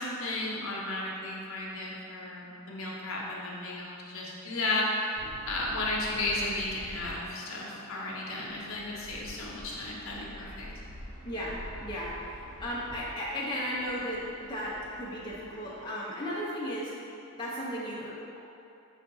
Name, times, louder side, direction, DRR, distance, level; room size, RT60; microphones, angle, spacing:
voice 1, 0.0-5.1 5.5-10.7, left 2 dB, 60° left, -3 dB, 0.7 m, -34 dB
sound 1, 5.1-15.9, equal, 80° right, 0.7 m, -47 dB
voice 2, 11.2-12.3 12.6-16.9 17.4-18.4, equal, 20° left, -7 dB, 0.4 m, -35 dB
5.6 x 2.3 x 3.8 m, 2.7 s
head